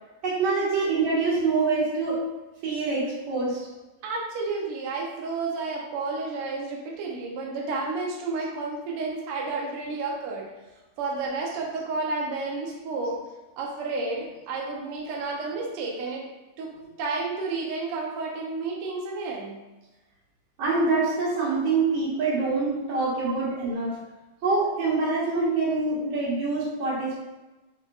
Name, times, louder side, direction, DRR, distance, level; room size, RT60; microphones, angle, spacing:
voice 1, 0.2-2.2 2.6-3.6 16.6-16.7 20.6-24.0 24.4-27.2, right 3 dB, 55° right, -7 dB, 2.5 m, -25 dB
voice 2, 4.0-10.5 11.0-13.2 13.6-16.3 16.6-16.7 17.0-19.6 23.3-23.4, right 3 dB, 85° right, -2 dB, 1.2 m, -31 dB
5.2 x 4.2 x 2.4 m, 1.1 s
omnidirectional pair, 3.6 m